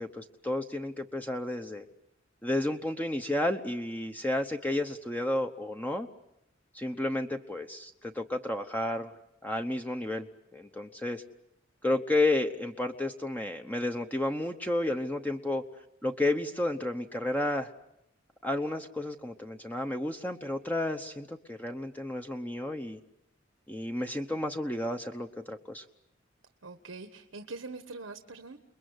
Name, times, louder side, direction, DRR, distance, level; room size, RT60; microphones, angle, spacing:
voice 1, 0.0-1.9 2.4-6.1 6.7-9.1 9.4-10.3 10.5-11.2 11.8-15.6 16.0-17.7 18.4-23.0 23.7-25.8, left 1 dB, 10° left, 5 dB, 0.9 m, -31 dB
voice 2, 26.6-28.6, right 3 dB, 90° right, 7 dB, 1.3 m, -43 dB
29.0 x 22.0 x 8.0 m, 0.81 s
head